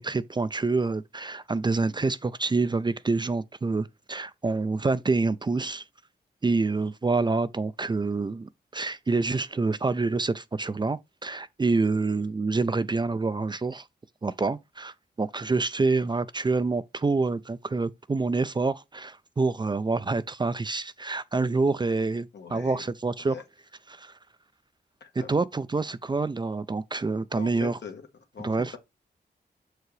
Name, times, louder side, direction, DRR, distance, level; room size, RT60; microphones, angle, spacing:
voice 1, 0.0-5.8 6.4-13.9 14.2-23.4 23.9-24.2 25.2-27.8 28.4-28.7, right 3 dB, 25° right, 0.3 m, -27 dB
voice 2, 22.3-22.8 23.2-23.4 25.0-25.3 27.3-28.0 28.3-28.8, left 6 dB, 80° left, 1.3 m, -41 dB
6.9 x 4.6 x 3.2 m
wide cardioid pair, 110°, 18 cm